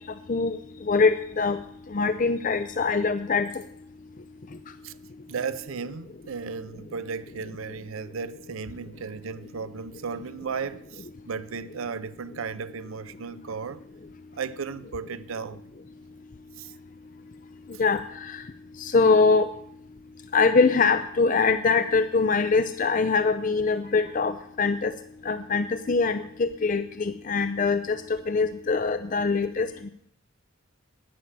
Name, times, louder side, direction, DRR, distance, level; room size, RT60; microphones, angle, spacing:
voice 1, 0.9-1.6 1.9-3.5 17.8-18.4 18.8-19.5 20.3-24.9 25.2-29.9, left 4 dB, 40° left, 0.5 m, -23 dB
voice 2, 5.3-13.8 14.3-15.6 16.6-16.7, right 5 dB, 75° right, 0.6 m, -35 dB
12.0 x 9.7 x 7.3 m
head